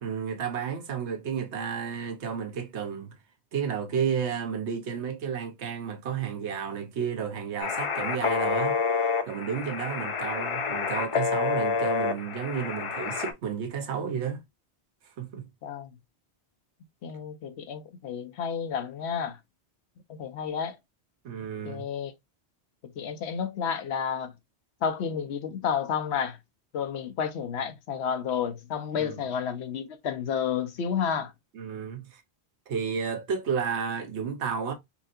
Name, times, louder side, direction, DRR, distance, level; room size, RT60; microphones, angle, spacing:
voice 1, 0.0-3.2 3.5-14.4 15.2-15.5 21.2-21.9 29.0-29.2 31.5-32.2 32.7-34.7, right 7 dB, 85° right, 1.1 m, -32 dB
sound 1, 7.6-13.3, left 5 dB, 50° left, 0.4 m, -28 dB
voice 2, 17.0-19.4 20.1-20.7 21.6-22.1 23.0-24.3 24.8-26.4 26.7-31.3, left 7 dB, 75° left, 1.0 m, -31 dB
4.3 x 2.7 x 2.4 m
omnidirectional pair, 1.1 m